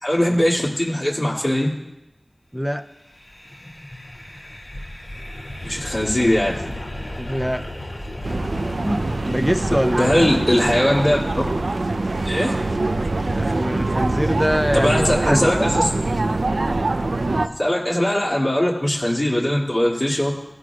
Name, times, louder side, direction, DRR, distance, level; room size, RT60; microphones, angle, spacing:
voice 1, 0.0-1.7 5.6-6.7 10.0-11.4 12.2-12.6 14.7-15.8 17.4-20.3, left 1 dB, 40° left, -5 dB, 2.2 m, -20 dB
voice 2, 2.5-2.8 7.2-7.7 8.8-10.2 13.3-15.5, equal, ahead, 7 dB, 0.4 m, -24 dB
sound 1, 2.9-12.1, left 1 dB, 60° left, 2.2 m, -35 dB
sound 2, 8.2-17.5, right 2 dB, 75° right, 0.5 m, -23 dB
17.5 x 11.0 x 2.3 m, 0.96 s
wide cardioid pair, 55°, 0 cm